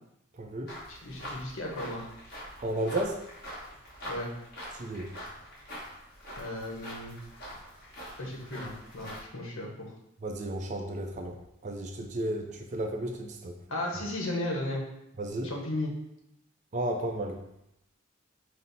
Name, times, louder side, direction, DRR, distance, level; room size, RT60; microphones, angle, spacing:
voice 1, 0.4-0.7 2.6-3.2 4.8-5.1 10.2-11.4 11.6-13.6 15.2-15.5 16.7-17.4, right 1 dB, 35° right, 4 dB, 0.4 m, -33 dB
sound 1, 0.7-9.2, equal, 50° left, 1.4 m, -44 dB
voice 2, 0.9-2.1 4.1-4.3 6.4-7.1 8.2-9.9 13.7-14.8 15.4-15.9, left 1 dB, 80° left, 0 dB, 0.9 m, -35 dB
5.3 x 2.0 x 4.0 m, 0.82 s
head